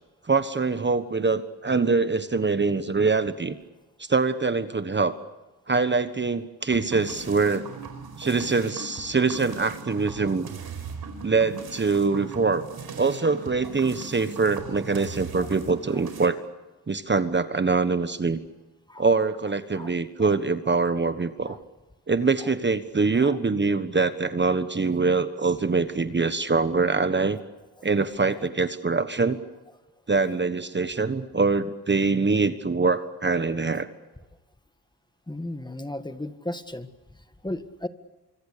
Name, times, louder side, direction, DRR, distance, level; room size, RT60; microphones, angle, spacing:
voice 1, 0.3-3.5 4.0-5.2 5.7-7.6 8.2-10.5 11.2-12.7 13.0-16.4 16.9-18.4 19.0-21.6 22.1-27.4 27.8-29.4 30.1-33.9, right 4 dB, 25° right, 11 dB, 1.3 m, -24 dB
sound 1, 6.7-16.3, right 5 dB, 65° right, 4.8 m, -39 dB
voice 2, 35.3-36.9 37.4-37.9, left 1 dB, 10° left, 10 dB, 1.7 m, -36 dB
25.5 x 24.5 x 6.8 m, 1.1 s
cardioid pair, 85°, 40 cm